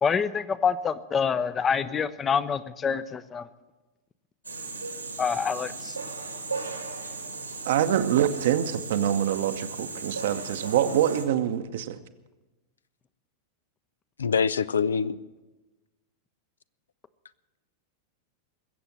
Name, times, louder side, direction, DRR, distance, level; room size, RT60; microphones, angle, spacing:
voice 1, 0.0-3.5 5.2-6.0, left 6 dB, 20° left, 15 dB, 0.7 m, -26 dB
sound 1, 4.4-11.2, right 4 dB, 85° right, 1.9 m, -36 dB
voice 2, 7.6-12.0, right 10 dB, 55° right, 10 dB, 0.9 m, -25 dB
voice 3, 14.2-15.2, left 6 dB, 70° left, 17 dB, 0.4 m, -24 dB
21.0 x 7.9 x 7.5 m, 1.1 s
figure-of-eight pair, 90°, 0 cm